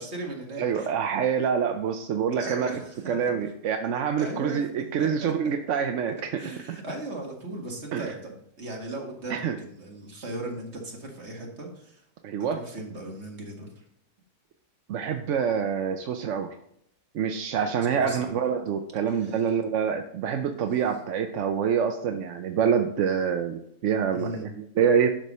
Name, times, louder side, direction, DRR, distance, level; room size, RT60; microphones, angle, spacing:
voice 1, 0.0-0.9 2.4-3.2 4.2-4.6 5.0-5.3 6.4-12.0 12.5-13.7 17.9-18.3 19.1-19.5 24.1-24.4, right 2 dB, 45° right, 0 dB, 2.2 m, -37 dB
voice 2, 0.6-2.7 3.1-6.4 6.7-6.8 7.9-8.1 9.3-9.6 12.2-12.6 14.9-16.5 17.1-25.2, right 7 dB, 60° right, 6 dB, 0.9 m, -26 dB
11.5 x 4.7 x 5.4 m, 0.74 s
omnidirectional pair, 1.7 m